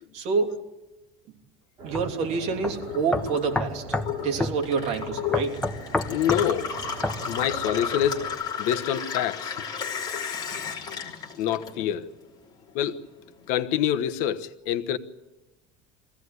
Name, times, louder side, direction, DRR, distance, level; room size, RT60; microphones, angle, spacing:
voice 1, 0.1-0.6 1.8-3.8 4.2-5.6, right 5 dB, 50° right, 3.2 m, -27 dB
sound 1, 1.8-8.3, right 2 dB, 30° right, 6.6 m, -41 dB
sound 2, 1.9-2.1 2.6-2.7 3.1-4.1 4.4-4.6 5.3-6.5 7.0-7.2, left 2 dB, 5° left, 0.9 m, -27 dB
Gurgling / Water tap faucet / Sink (filling or washing), 2.7-12.2 12.5-13.4, left 7 dB, 30° left, 3.4 m, -34 dB
voice 2, 6.1-7.0 7.3-8.2 8.6-9.6 11.4-12.1 12.7-13.0 13.5-15.0, left 10 dB, 65° left, 1.2 m, -26 dB
23.0 x 16.5 x 9.7 m
cardioid pair, 160°, 14 cm